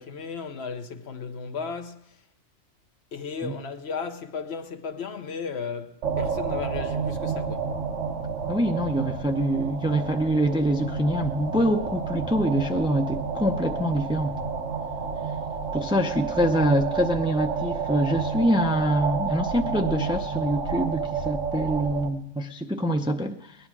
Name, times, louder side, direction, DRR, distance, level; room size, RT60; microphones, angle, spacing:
voice 1, 0.0-2.2 3.1-7.7, left 5 dB, 65° left, 1.1 m, -35 dB
sound 1, 6.0-22.1, right 5 dB, 85° right, 1.5 m, -30 dB
voice 2, 8.5-14.4 15.7-23.6, right 1 dB, 5° right, 0.6 m, -25 dB
19.0 x 10.5 x 6.1 m
omnidirectional pair, 1.2 m